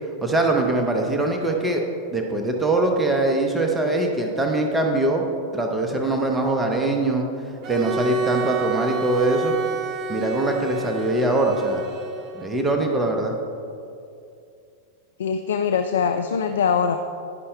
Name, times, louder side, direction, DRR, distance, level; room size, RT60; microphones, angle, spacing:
voice 1, 0.2-1.8 2.1-5.2 5.5-7.2 7.7-9.5 10.1-11.8 12.3-13.3, right 2 dB, 10° right, 2 dB, 0.8 m, -22 dB
Bowed string instrument, 7.6-12.6, right 3 dB, 35° right, 0.4 m, -29 dB
voice 2, 15.2-17.0, left 6 dB, 65° left, 7 dB, 0.3 m, -22 dB
10.5 x 5.5 x 3.3 m, 2.5 s
figure-of-eight pair, 90°, 0 cm